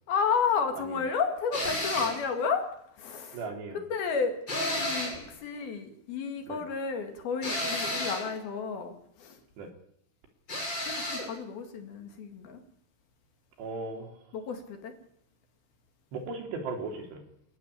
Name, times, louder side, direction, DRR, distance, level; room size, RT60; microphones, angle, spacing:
voice 1, 0.1-2.6 3.0-3.4 3.7-8.9 9.2-9.4 10.8-12.6 14.3-14.9, left 5 dB, 60° left, 6 dB, 3.5 m, -31 dB
sound 1, 1.5-2.2 4.5-5.3 7.4-8.3 10.5-11.3, left 1 dB, 20° left, 8.5 m, -32 dB
voice 2, 3.3-3.8 6.5-6.6 9.6-9.7 13.6-14.1 16.1-17.2, right 3 dB, 65° right, 4 dB, 5.1 m, -37 dB
29.0 x 12.0 x 9.9 m, 0.73 s
omnidirectional pair, 5.5 m